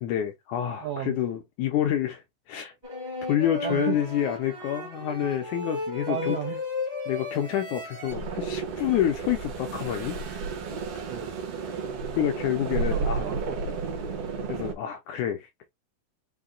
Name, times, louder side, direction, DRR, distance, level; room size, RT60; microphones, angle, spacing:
voice 1, 0.0-2.2 2.5-2.7 3.3-6.4 7.1-10.2 12.2-13.3 14.5-15.5, left 10 dB, 80° left, 1.8 m, -28 dB
voice 2, 0.8-1.2 3.6-4.0 6.1-6.6 11.1-11.3 12.8-14.5, right 9 dB, 85° right, 1.4 m, -35 dB
sound 1, 2.8-8.1, left 3 dB, 30° right, 0.8 m, -34 dB
sound 2, 8.1-14.7, right 4 dB, 65° right, 1.5 m, -32 dB
5.7 x 2.2 x 3.8 m
omnidirectional pair, 4.1 m